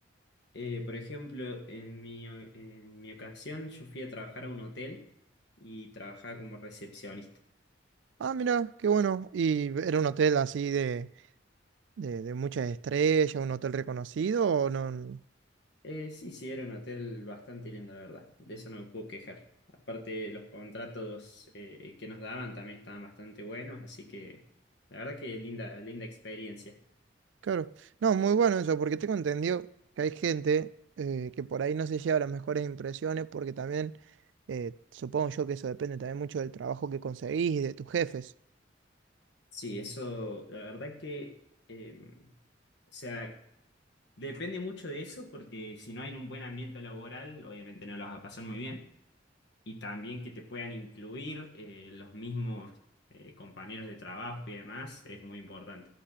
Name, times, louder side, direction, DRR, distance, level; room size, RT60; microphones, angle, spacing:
voice 1, 0.5-5.0 5.6-7.3 15.8-19.4 19.9-24.4 24.9-26.8 39.5-41.3 41.7-42.3 42.9-43.4 44.2-48.8 49.6-52.8 53.1-55.9, left 1 dB, 65° left, 1.7 m, -41 dB
voice 2, 8.2-11.1 12.0-15.2 27.4-27.7 28.0-29.7 30.0-30.7 31.0-33.9 34.5-38.3, right 6 dB, 75° right, 0.3 m, -29 dB
13.5 x 6.6 x 5.7 m
head